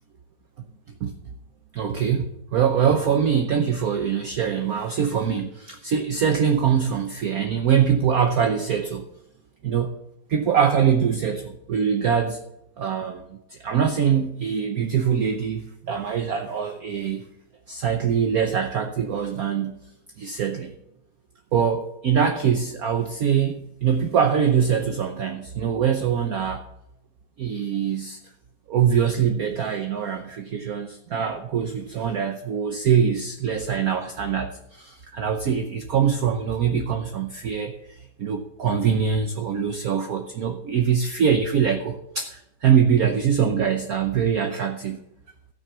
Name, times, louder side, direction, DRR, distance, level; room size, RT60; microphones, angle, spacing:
voice 1, 1.7-9.1 9.6-9.9 10.3-12.4 12.8-17.3 17.7-19.8 20.2-20.7 21.5-26.7 27.4-28.2 28.7-45.0, right 7 dB, 55° right, 6 dB, 1.1 m, -23 dB
13.5 x 6.4 x 6.9 m, 0.81 s
omnidirectional pair, 2.2 m